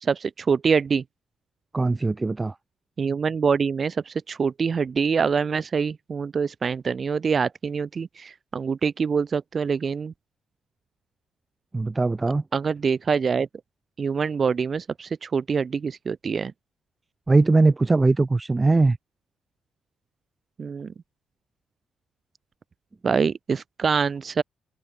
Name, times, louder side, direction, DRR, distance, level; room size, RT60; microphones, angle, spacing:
voice 1, 0.0-1.0 3.0-10.1 12.5-13.5 14.0-16.5 20.6-20.9 23.0-24.4, right 5 dB, 40° right, 0.9 m, -25 dB
voice 2, 1.7-2.6 11.7-12.4 17.3-19.0, right 3 dB, 20° right, 0.4 m, -20 dB
open air
cardioid pair, 90°, 0 cm